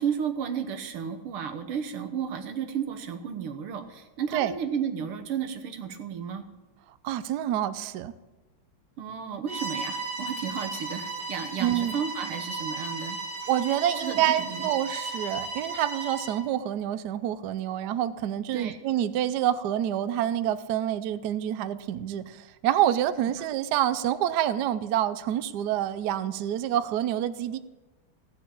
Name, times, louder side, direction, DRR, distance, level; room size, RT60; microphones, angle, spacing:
voice 1, 0.0-6.5 9.0-13.2 13.9-14.7 18.5-18.8, right 7 dB, 90° right, 2.0 m, -33 dB
voice 2, 7.0-8.1 11.6-11.9 13.5-27.6, right 11 dB, 70° right, 1.0 m, -27 dB
Bowed string instrument, 9.5-16.4, right 3 dB, 55° right, 2.6 m, -35 dB
16.5 x 6.0 x 8.4 m
omnidirectional pair, 2.3 m